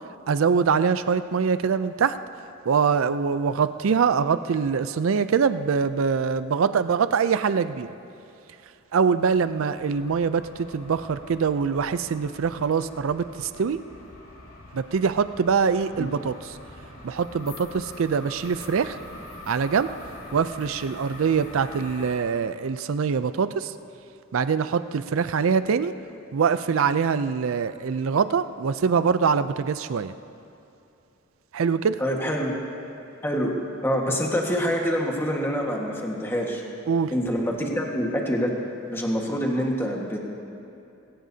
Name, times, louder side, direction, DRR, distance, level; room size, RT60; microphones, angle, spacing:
voice 1, 0.3-2.2 2.7-7.9 8.9-13.8 14.7-16.5 17.0-19.0 19.5-19.9 20.3-23.7 24.3-25.9 26.3-30.1 31.5-32.0 36.9-37.1, right 6 dB, 70° right, 13 dB, 0.4 m, -23 dB
sound 1, 9.2-22.1, left 2 dB, 90° left, 2.2 m, -44 dB
voice 2, 32.0-32.5 33.2-33.5 33.8-36.6 37.1-38.5 38.9-40.2, equal, 10° left, -1 dB, 1.5 m, -26 dB
20.5 x 16.5 x 2.8 m, 2.7 s
head